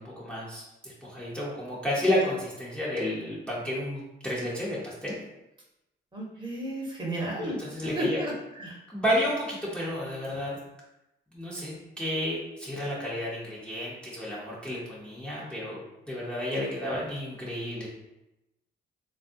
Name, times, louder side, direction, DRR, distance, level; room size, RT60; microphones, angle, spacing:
voice 1, 0.0-5.1 7.4-8.2 8.9-10.6 11.3-15.8 16.1-17.9, equal, 5° left, -7 dB, 0.8 m, -31 dB
voice 2, 6.1-7.5 7.9-8.8, right 1 dB, 25° right, -3 dB, 1.0 m, -32 dB
3.4 x 2.4 x 2.6 m, 0.92 s
cardioid pair, 90°, 20 cm